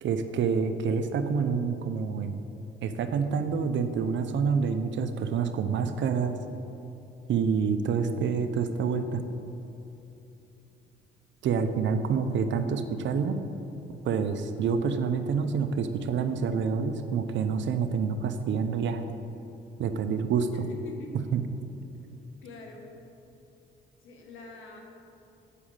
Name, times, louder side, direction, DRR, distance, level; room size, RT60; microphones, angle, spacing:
voice 1, 0.0-2.3 2.8-6.4 7.3-9.2 11.4-13.4 14.0-19.0 19.8-20.4 21.3-21.4, right 6 dB, 70° right, 8 dB, 0.7 m, -27 dB
voice 2, 20.3-21.1 22.4-22.9 24.0-24.8, left 2 dB, 85° left, 1 dB, 1.5 m, -44 dB
8.4 x 6.2 x 7.3 m, 2.8 s
cardioid pair, 90°, 20 cm